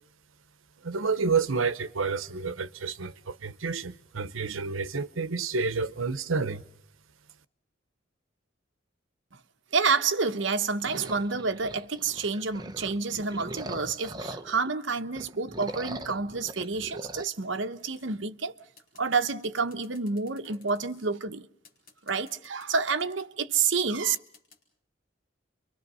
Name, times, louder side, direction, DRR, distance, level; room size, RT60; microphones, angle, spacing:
voice 1, 0.8-6.6, right 4 dB, 90° right, 0.9 m, -29 dB
voice 2, 9.7-18.5 19.0-21.5 22.0-24.2, right 5 dB, 65° right, 1.0 m, -29 dB
sound 1, 10.9-14.7 15.1-17.3, right 1 dB, 20° right, 0.9 m, -41 dB
sound 2, 17.9-18.3 18.8-21.1 21.6-23.1 23.9-24.6, left 4 dB, 45° left, 4.8 m, -56 dB
29.5 x 24.0 x 5.5 m
head